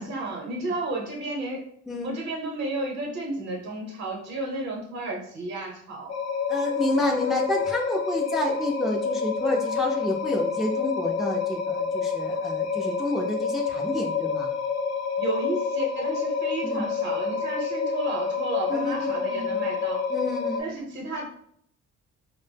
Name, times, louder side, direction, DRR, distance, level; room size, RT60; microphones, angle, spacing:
voice 1, 0.0-1.6 2.0-6.1 15.2-20.0 20.6-21.2, right 2 dB, 65° right, -2 dB, 0.8 m, -32 dB
sound 1, 6.1-20.6, left 5 dB, 60° left, 0.4 m, -28 dB
voice 2, 6.5-14.5 16.6-16.9 18.7-19.6 20.1-20.7, left 1 dB, ahead, 0 dB, 0.4 m, -29 dB
2.0 x 2.0 x 3.2 m, 0.67 s
cardioid pair, 90°, 30 cm